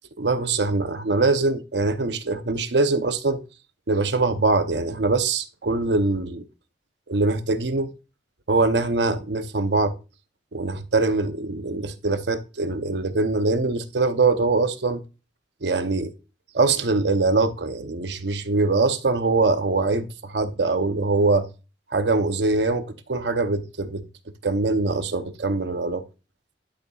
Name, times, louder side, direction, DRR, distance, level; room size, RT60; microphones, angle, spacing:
voice 1, 0.2-3.4 3.9-6.5 7.1-7.9 8.5-9.9 10.5-15.0 15.6-16.1 16.5-21.5 21.9-24.0 24.4-26.0, right 3 dB, 65° right, 0.8 m, -23 dB
11.5 x 6.8 x 2.4 m
head